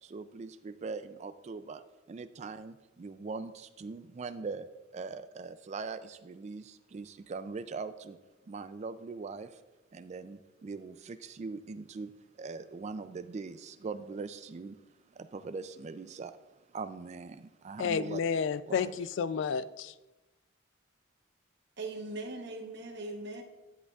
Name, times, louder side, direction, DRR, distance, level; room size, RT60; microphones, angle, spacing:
voice 1, 0.0-1.8 2.1-4.7 4.9-8.2 8.5-9.6 9.9-12.1 12.4-14.8 15.1-16.3 16.7-18.2 18.7-19.0, right 4 dB, 35° right, 12 dB, 0.3 m, -41 dB
voice 2, 17.8-19.9, left 6 dB, 60° left, 16 dB, 0.3 m, -31 dB
voice 3, 21.8-23.4, right 2 dB, 55° right, 2 dB, 1.0 m, -40 dB
11.0 x 7.9 x 2.3 m, 1.1 s
head